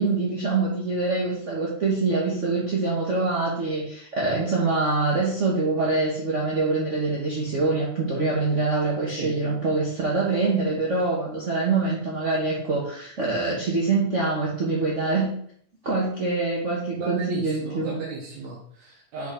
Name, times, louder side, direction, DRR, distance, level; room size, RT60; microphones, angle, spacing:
voice 1, 0.0-15.3 15.8-17.9, right 3 dB, 50° right, -5 dB, 0.8 m, -25 dB
voice 2, 17.0-19.3, right 4 dB, 70° right, -3 dB, 2.5 m, -35 dB
5.6 x 5.6 x 5.1 m, 0.63 s
omnidirectional pair, 3.4 m